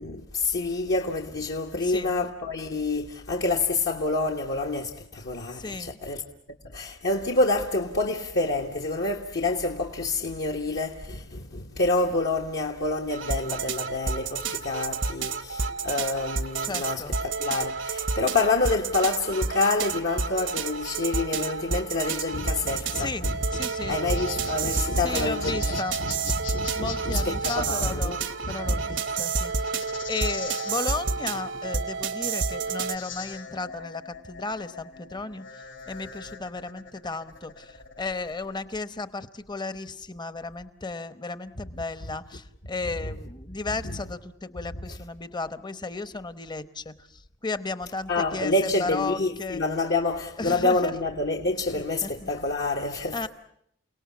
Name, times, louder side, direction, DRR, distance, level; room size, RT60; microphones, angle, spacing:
voice 1, 0.0-6.2 6.6-28.2 28.4-28.8 43.8-43.9 48.1-53.3, left 2 dB, 60° left, 1.4 m, -28 dB
voice 2, 1.7-2.1 5.5-6.0 16.6-17.1 22.9-23.2 23.5-24.0 25.0-26.0 26.8-49.6 50.4-50.9 51.7-52.3 53.1-53.3, left 3 dB, 25° left, 0.9 m, -34 dB
sound 1, 13.1-33.0, right 4 dB, 70° right, 1.1 m, -30 dB
sound 2, 23.8-38.6, left 7 dB, 75° left, 5.0 m, -42 dB
29.5 x 18.0 x 8.5 m
head